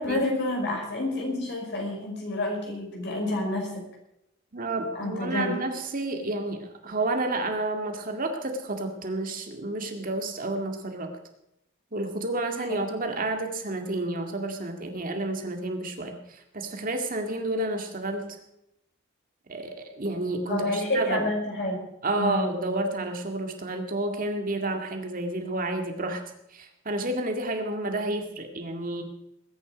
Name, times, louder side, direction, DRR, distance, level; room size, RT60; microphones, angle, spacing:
voice 1, 0.0-3.8 5.0-5.6 12.7-12.8 20.5-21.9 22.2-22.5, left 1 dB, 55° left, 0 dB, 5.7 m, -29 dB
voice 2, 4.5-11.2 11.9-18.4 19.5-21.3 22.0-29.0, right 2 dB, 40° right, 4 dB, 2.1 m, -30 dB
21.0 x 10.0 x 5.1 m, 0.82 s
head